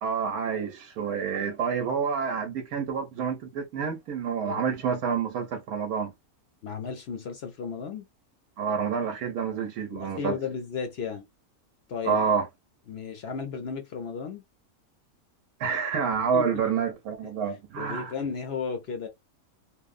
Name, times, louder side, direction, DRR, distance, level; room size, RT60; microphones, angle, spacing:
voice 1, 0.0-6.1 8.6-10.4 12.0-12.5 15.6-18.1, right 6 dB, 80° right, 1.1 m, -28 dB
voice 2, 6.6-8.1 9.9-11.2 11.9-12.2 12.9-14.4 16.3-16.7 17.8-19.1, left 6 dB, 60° left, 0.7 m, -34 dB
2.9 x 2.1 x 2.4 m
omnidirectional pair, 1.6 m